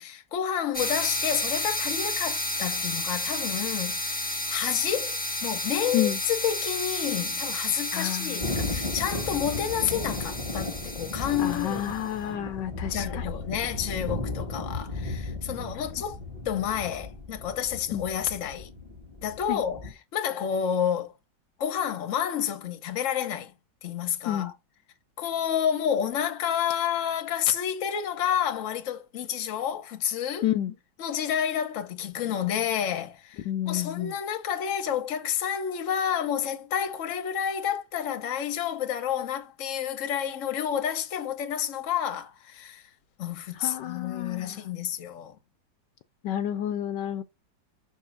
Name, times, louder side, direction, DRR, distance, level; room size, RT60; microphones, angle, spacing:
voice 1, 0.0-11.9 12.9-16.2 16.4-18.7 19.2-21.1 21.6-23.5 23.8-24.5 25.2-30.5 31.0-42.8 43.2-45.4, left 9 dB, 50° left, 1.1 m, -30 dB
sound 1, 0.7-12.0, left 1 dB, 5° left, 0.7 m, -32 dB
voice 2, 7.9-8.6 11.4-13.3 17.9-18.0 19.5-19.6 24.3-24.5 30.4-30.7 33.5-34.1 43.6-44.6 46.2-47.2, left 11 dB, 75° left, 1.2 m, -30 dB
Thunder, 8.4-19.9, left 2 dB, 15° right, 1.8 m, -35 dB
6.3 x 3.7 x 5.8 m
omnidirectional pair, 2.0 m